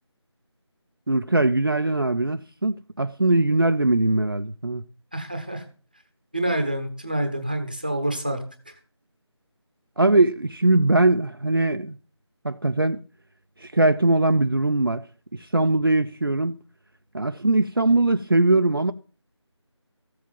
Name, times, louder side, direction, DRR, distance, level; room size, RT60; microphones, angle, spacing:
voice 1, 1.1-4.8 10.0-12.0 12.4-13.0 13.6-15.0 15.3-16.5 17.1-18.9, right 2 dB, 50° right, 0.5 m, -21 dB
voice 2, 5.1-5.6 6.3-8.4 8.7-8.8, right 1 dB, 20° right, 0.9 m, -27 dB
14.5 x 7.6 x 5.5 m
figure-of-eight pair, 180°, 15 cm